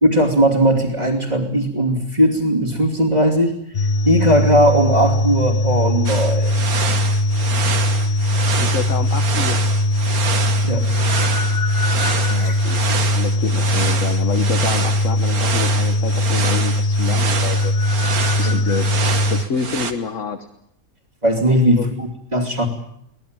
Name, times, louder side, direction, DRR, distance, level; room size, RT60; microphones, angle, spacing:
voice 1, 0.0-6.6 10.6-10.9 12.3-12.6 18.4-18.6 21.2-22.7, right 1 dB, 25° right, -3 dB, 2.8 m, -18 dB
sound 1, 3.7-19.4, left 1 dB, 35° left, 1.2 m, -20 dB
sound 2, 6.1-19.9, right 6 dB, 70° right, 1.9 m, -27 dB
voice 2, 8.6-9.6 12.3-12.8 13.2-17.7 18.4-18.9 19.2-20.5 21.5-21.9, left 6 dB, 55° left, 6 dB, 1.5 m, -27 dB
23.5 x 18.0 x 8.9 m, 0.74 s
omnidirectional pair, 1.6 m